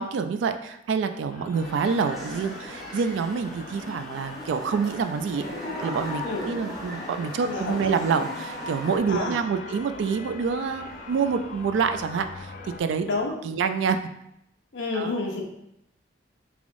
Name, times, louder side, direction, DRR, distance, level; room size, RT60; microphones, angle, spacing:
voice 1, 0.0-13.1 13.4-14.0 14.9-15.1, right 5 dB, 75° right, 8 dB, 0.3 m, -27 dB
sound 1, 1.3-12.8, left 3 dB, 45° left, 0.3 m, -41 dB
sound 2, 1.6-9.0, equal, ahead, 0.6 m, -39 dB
voice 2, 7.4-7.8 9.1-9.4 13.0-13.6 14.7-15.4, left 3 dB, 75° left, 0 dB, 0.7 m, -29 dB
3.5 x 3.4 x 2.5 m, 0.79 s
head